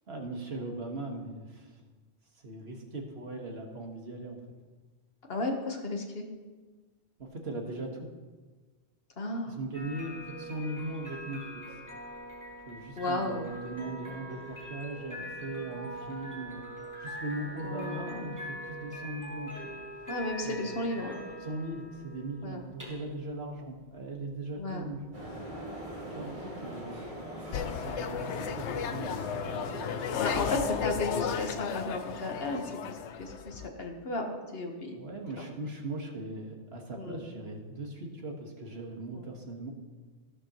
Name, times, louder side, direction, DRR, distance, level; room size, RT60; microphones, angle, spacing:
voice 1, 0.1-1.7 2.4-4.4 7.2-8.1 9.4-11.4 12.7-16.6 17.0-19.7 20.4-20.8 21.4-25.0 26.1-27.1 27.5-29.4 34.9-39.7, right 2 dB, 65° right, 1 dB, 1.8 m, -39 dB
voice 2, 5.3-6.3 9.2-9.6 13.0-13.4 17.6-18.3 20.1-21.2 22.4-22.6 24.6-24.8 30.2-34.3 34.5-35.0 35.4-35.5 36.9-37.2 39.1-39.3, left 2 dB, 60° left, 3 dB, 1.5 m, -34 dB
sound 1, 9.7-28.7, right 1 dB, 15° right, 2.5 m, -43 dB
sound 2, 25.1-30.8, right 1 dB, 45° right, 3.3 m, -41 dB
sound 3, 27.5-33.7, left 8 dB, 85° left, 0.9 m, -34 dB
14.5 x 12.0 x 3.0 m, 1.3 s
omnidirectional pair, 1.2 m